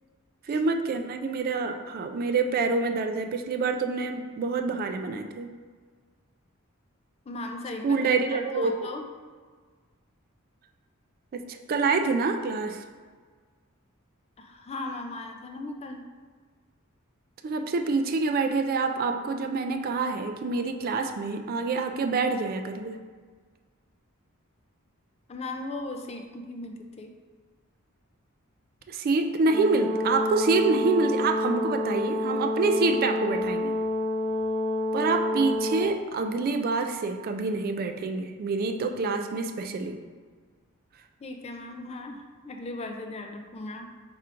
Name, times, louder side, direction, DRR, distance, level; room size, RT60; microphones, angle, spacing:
voice 1, 0.5-5.5 7.8-8.9 11.3-12.8 17.4-23.0 28.9-33.7 34.9-40.0, right 4 dB, 45° right, 6 dB, 0.3 m, -27 dB
voice 2, 7.3-8.0 8.3-9.1 14.4-16.1 25.3-27.1 41.2-43.9, left 2 dB, 30° left, 4 dB, 0.4 m, -37 dB
Brass instrument, 29.5-35.9, left 1 dB, 5° left, 0.7 m, -28 dB
4.8 x 4.4 x 2.5 m, 1.5 s
head